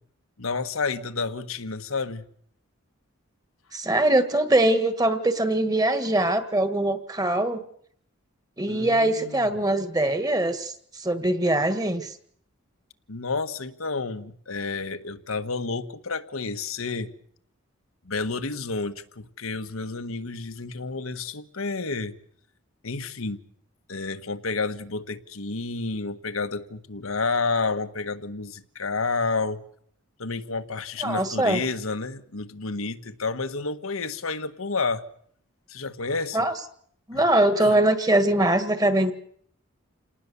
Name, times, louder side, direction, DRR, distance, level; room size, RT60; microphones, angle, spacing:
voice 1, 0.4-2.2 8.7-9.5 13.1-17.1 18.0-22.1 22.8-23.4 23.9-29.6 30.2-35.0 35.7-36.4 37.1-37.2 37.6-37.7, left 4 dB, 85° left, 1.4 m, -30 dB
voice 2, 3.7-7.6 8.6-12.1 31.0-31.6 36.3-36.5 37.1-39.1, right 1 dB, 15° right, 1.7 m, -22 dB
28.5 x 19.0 x 7.0 m
head